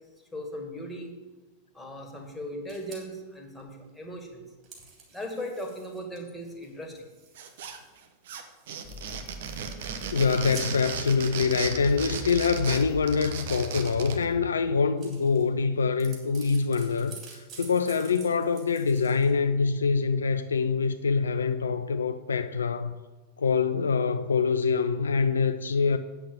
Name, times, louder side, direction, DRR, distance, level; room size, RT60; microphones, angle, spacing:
voice 1, 0.3-1.1 1.7-4.4 5.1-7.1, equal, 5° left, 2.0 m, -38 dB
sound 1, 2.7-3.0 3.6-3.7 3.9-4.0 4.6-8.0 8.3-9.1 9.4-9.7 9.9-10.8 11.6-11.7 14.5-14.6 14.9-15.6 15.9-19.3, right 5 dB, 35° right, 3.5 m, -48 dB
sound 2, 7.4-8.0 8.3-14.2, right 7 dB, 55° right, 1.1 m, -36 dB
sound 3, 8.8-14.4, left 1 dB, 30° left, 1.1 m, -42 dB
voice 2, 10.1-22.9 23.4-26.0, left 5 dB, 70° left, 0.4 m, -25 dB
8.5 x 6.8 x 7.5 m
figure-of-eight pair, 90°, 0 cm